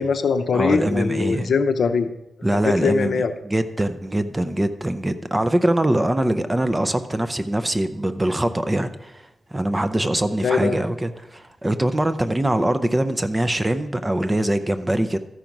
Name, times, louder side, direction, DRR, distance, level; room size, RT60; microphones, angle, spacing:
voice 1, 0.0-2.1 2.5-3.3 10.4-10.8, left 5 dB, 65° left, 0.7 m, -21 dB
voice 2, 0.5-1.5 2.4-9.2 9.5-15.2, right 1 dB, 15° right, 0.5 m, -23 dB
13.5 x 5.1 x 5.9 m
wide cardioid pair, 165°, 0 cm